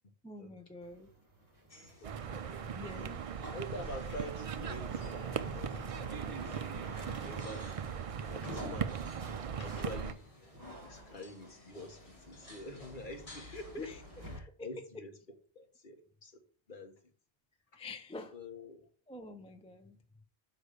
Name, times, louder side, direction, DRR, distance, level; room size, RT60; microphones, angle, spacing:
voice 1, 0.2-1.1 2.7-3.3 13.8-14.0 14.6-15.0 17.7-18.4 19.1-20.0, left 2 dB, 5° left, 0.5 m, -46 dB
sound 1, 0.8-14.4, equal, 15° right, 2.2 m, -50 dB
sound 2, 1.7-14.3, left 1 dB, 30° left, 1.8 m, -58 dB
voice 2, 2.0-3.1 3.5-6.8 7.1-7.7 8.3-10.3 10.8-13.9 14.2-15.1 15.5-16.4 16.7-16.9 18.3-18.8, left 1 dB, 50° left, 1.5 m, -47 dB
sound 3, 2.0-10.1, right 7 dB, 55° right, 0.4 m, -39 dB
6.6 x 4.8 x 6.6 m
omnidirectional pair, 1.1 m